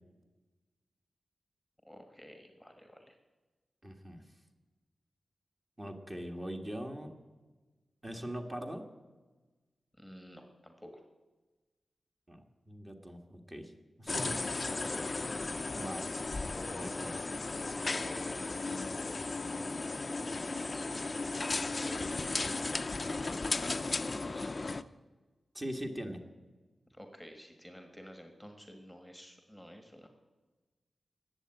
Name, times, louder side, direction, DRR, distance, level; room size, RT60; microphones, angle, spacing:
voice 1, 1.8-3.2 10.0-11.0 17.8-20.9 21.8-24.7 26.9-30.1, equal, ahead, 5 dB, 1.5 m, -51 dB
voice 2, 3.8-4.2 5.8-7.2 8.0-8.9 12.3-13.7 14.0-14.7 15.7-16.0 16.7-17.1 25.5-26.2, equal, 20° right, 3 dB, 1.6 m, -41 dB
sound 1, 14.1-24.8, left 3 dB, 30° left, 0.5 m, -35 dB
20.0 x 7.9 x 8.9 m, 1.3 s
wide cardioid pair, 140°, 0 cm